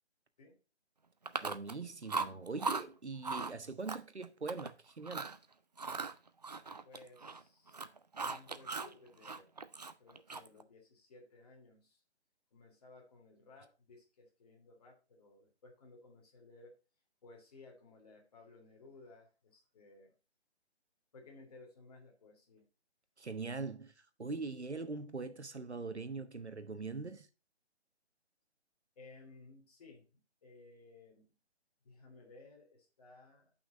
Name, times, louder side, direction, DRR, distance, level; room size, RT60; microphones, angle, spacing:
Chewing mastication, 1.3-1.8 2.1-2.8 3.2-3.5 3.9-4.7 5.0-5.4 5.8-7.4 7.7-8.9 9.2-10.6, right 4 dB, 40° right, 0.5 m, -39 dB
voice 1, 1.4-5.3 23.2-23.9 24.2-27.3, right 4 dB, 75° right, 1.3 m, -42 dB
voice 2, 6.8-7.8 8.2-9.5 10.0-12.0 12.5-16.8 17.2-20.1 21.1-22.6 29.0-30.1 30.4-31.3 31.8-33.5, left 3 dB, 35° left, 3.1 m, -58 dB
9.0 x 5.9 x 3.9 m
figure-of-eight pair, 145°, 34 cm